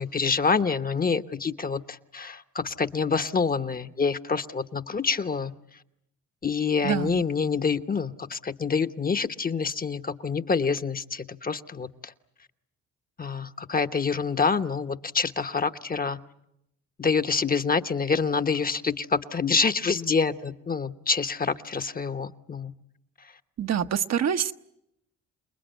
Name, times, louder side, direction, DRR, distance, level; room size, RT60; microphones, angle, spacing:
voice 1, 0.0-5.5 6.4-12.1 13.2-16.2 17.0-22.7, left 5 dB, 30° left, 10 dB, 1.1 m, -27 dB
voice 2, 6.8-7.2 23.6-24.5, right 8 dB, 60° right, 8 dB, 1.0 m, -26 dB
28.5 x 20.5 x 9.2 m, 0.80 s
cardioid pair, 90°, 30 cm